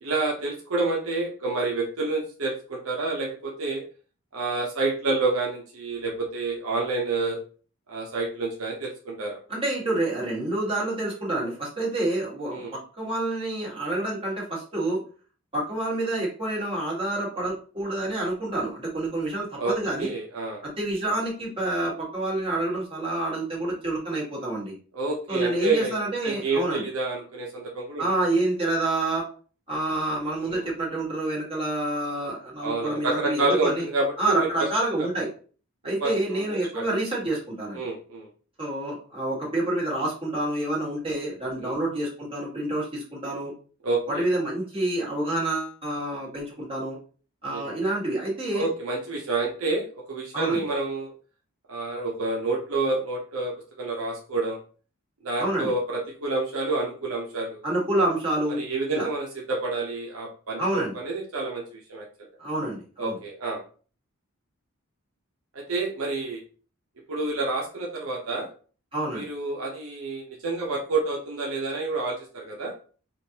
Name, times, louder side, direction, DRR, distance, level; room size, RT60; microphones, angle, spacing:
voice 1, 0.0-3.8 4.3-7.4 7.9-9.4 12.5-12.7 19.6-19.7 20.0-20.6 24.9-26.0 26.2-28.1 30.4-30.6 32.6-34.5 35.0-35.1 36.0-36.8 37.7-38.3 41.6-41.7 43.8-44.2 47.5-47.6 48.5-51.1 51.7-54.6 55.2-57.6 58.6-61.6 61.9-62.3 63.0-63.6 65.5-66.4 67.1-68.5 69.1-72.7, right 3 dB, 75° right, -1 dB, 0.8 m, -28 dB
voice 2, 9.5-12.6 13.0-15.0 15.5-20.1 20.6-24.7 25.3-26.8 28.0-29.2 29.7-33.9 34.2-35.3 35.8-37.8 38.6-43.5 44.1-47.0 47.4-48.7 50.3-50.6 55.4-55.7 57.6-58.6 58.9-59.1 60.6-60.9 62.4-63.2 68.9-69.3, right 2 dB, 25° right, -5 dB, 1.7 m, -28 dB
5.0 x 2.5 x 2.8 m, 0.40 s
head